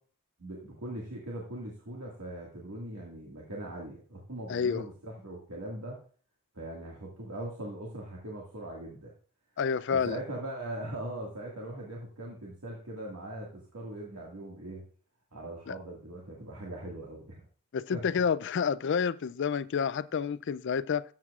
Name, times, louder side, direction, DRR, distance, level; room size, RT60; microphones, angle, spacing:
voice 1, 0.4-6.0 6.5-9.1 9.9-14.8 15.3-17.4 17.9-18.1, right 1 dB, 85° right, 1.9 m, -40 dB
voice 2, 4.5-4.8 9.6-10.2 15.7-15.8 17.7-21.0, left 6 dB, 55° left, 0.4 m, -29 dB
13.5 x 7.4 x 2.4 m
head